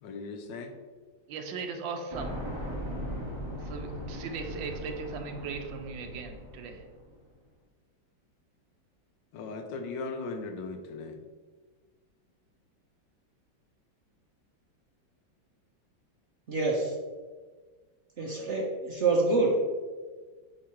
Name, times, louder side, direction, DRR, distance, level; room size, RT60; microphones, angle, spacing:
voice 1, 0.0-0.7 9.3-11.2, left 3 dB, 75° left, 5 dB, 1.3 m, -38 dB
voice 2, 1.3-2.3 3.6-6.8, right 5 dB, 80° right, 5 dB, 1.4 m, -38 dB
sound 1, 2.1-7.1, equal, 20° right, 0.8 m, -38 dB
voice 3, 16.5-16.9 18.2-19.5, right 3 dB, 55° right, -2 dB, 0.8 m, -26 dB
8.3 x 2.9 x 4.5 m, 1.4 s
omnidirectional pair, 2.1 m